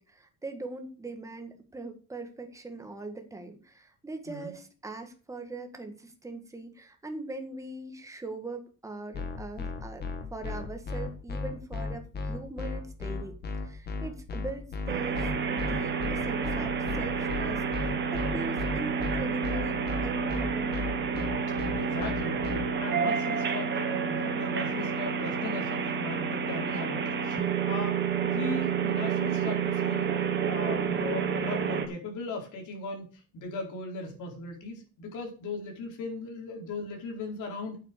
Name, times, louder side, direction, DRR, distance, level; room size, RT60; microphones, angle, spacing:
voice 1, 0.0-10.0 10.3-20.9, right 2 dB, 10° right, 5 dB, 1.7 m, -41 dB
sound 1, 9.1-22.7, left 3 dB, 35° left, 2.2 m, -34 dB
sound 2, 14.9-31.9, right 6 dB, 35° right, 1.7 m, -29 dB
voice 2, 21.7-33.1 33.3-37.8, left 2 dB, 80° left, 1 dB, 4.7 m, -38 dB
9.0 x 7.5 x 6.7 m, 0.37 s
cardioid pair, 170°, 30 cm